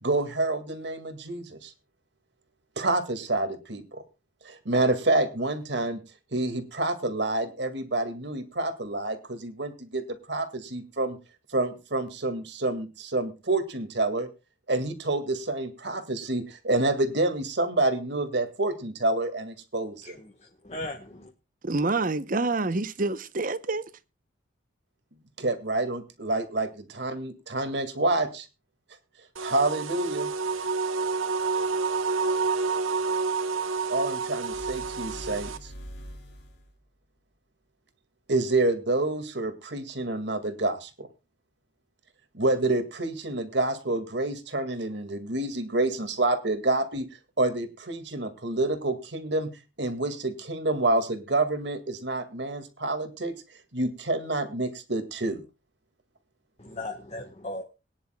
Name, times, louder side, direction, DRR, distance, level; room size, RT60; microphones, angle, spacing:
voice 1, 0.0-1.7 2.8-4.0 4.4-6.0 6.3-11.2 11.5-14.3 14.7-20.2 25.4-28.5 29.4-30.3 33.9-35.7 38.3-41.1 42.3-47.1 47.4-49.5 49.8-53.3 53.7-55.4, right 2 dB, 60° right, 2.0 m, -28 dB
voice 2, 20.0-21.3 56.6-57.6, left 2 dB, 30° left, 1.3 m, -38 dB
voice 3, 21.6-23.9, right 3 dB, 45° right, 0.8 m, -27 dB
sound 1, 29.4-35.6, right 4 dB, 85° right, 1.0 m, -28 dB
sound 2, 34.4-36.8, equal, 60° left, 3.6 m, -43 dB
22.0 x 10.0 x 2.3 m
head